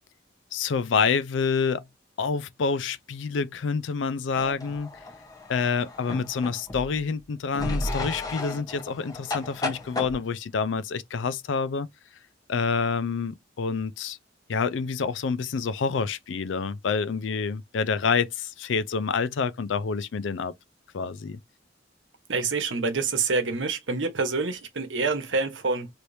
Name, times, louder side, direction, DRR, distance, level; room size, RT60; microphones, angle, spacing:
voice 1, 0.5-1.9 2.2-4.9 5.5-11.9 12.5-14.2 14.5-20.5 20.9-21.4, left 5 dB, 70° left, 0.4 m, -27 dB
sound 1, 4.4-7.0 7.5-10.2, left 2 dB, 20° left, 0.8 m, -34 dB
voice 2, 22.3-25.9, right 4 dB, 70° right, 1.0 m, -27 dB
3.2 x 2.9 x 2.6 m
head